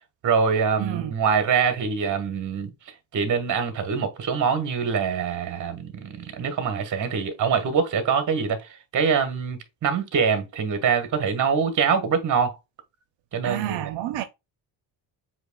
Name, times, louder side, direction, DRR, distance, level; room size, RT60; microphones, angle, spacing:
voice 1, 0.2-2.7 3.1-12.5 13.3-13.9, right 6 dB, 45° right, 1.2 m, -24 dB
voice 2, 0.8-1.1 13.4-14.2, right 13 dB, 80° right, 0.6 m, -29 dB
7.8 x 2.9 x 2.2 m
cardioid pair, 135°, 43 cm